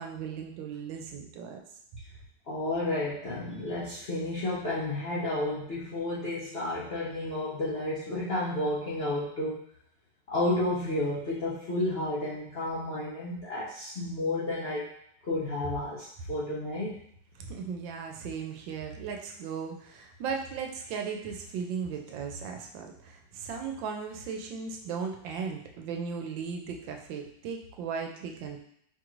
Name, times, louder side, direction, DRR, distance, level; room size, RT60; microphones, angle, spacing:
voice 1, 0.0-1.6 17.4-28.6, right 6 dB, 90° right, 3 dB, 1.3 m, -37 dB
voice 2, 2.5-9.6 10.3-14.9 15.2-16.9, left 1 dB, 65° left, -8 dB, 0.6 m, -31 dB
4.8 x 2.5 x 3.0 m, 0.71 s
omnidirectional pair, 2.0 m